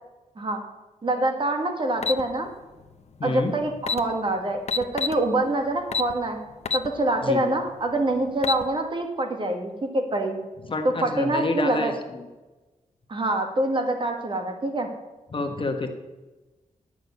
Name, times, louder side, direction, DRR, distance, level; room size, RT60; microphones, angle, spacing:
voice 1, 1.0-2.5 3.2-6.4 6.7-10.4 11.0-11.9 13.1-14.9, right 1 dB, 40° right, 4 dB, 1.7 m, -25 dB
sound 1, 2.0-2.2 3.4-3.5 3.8-4.0 4.7-5.2 5.9-6.1 6.6-6.9 7.3-7.4 8.2-8.6, left 5 dB, 55° left, 0.7 m, -26 dB
voice 2, 3.2-3.5 7.2-7.4 10.7-12.2 15.3-15.9, left 2 dB, 40° left, 5 dB, 1.2 m, -28 dB
10.0 x 6.2 x 8.3 m, 1.1 s
wide cardioid pair, 125°, 13 cm